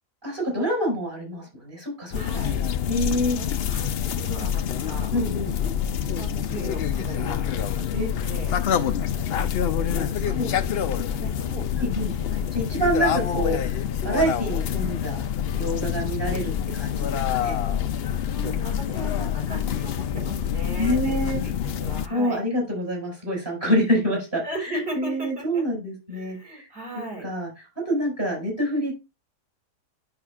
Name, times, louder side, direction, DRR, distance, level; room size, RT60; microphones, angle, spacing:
voice 1, 0.2-2.4 2.9-3.4 5.1-5.5 7.9-8.1 9.9-10.5 11.8-12.1 12.5-13.7 14.0-15.2 15.5-17.6 20.8-21.4 22.1-24.4 24.7-26.7 26.9-27.5 27.9-29.0, equal, 30° right, -1 dB, 5.3 m, -27 dB
sound 1, 2.1-22.1, left 9 dB, 90° left, 0.5 m, -26 dB
voice 2, 2.1-2.6 3.3-5.1 6.1-8.6 9.8-10.5 10.9-12.6 17.9-22.4 24.4-25.7 26.1-27.3, right 2 dB, 75° right, -1 dB, 5.4 m, -38 dB
10.5 x 5.9 x 2.3 m, 0.24 s
omnidirectional pair, 1.8 m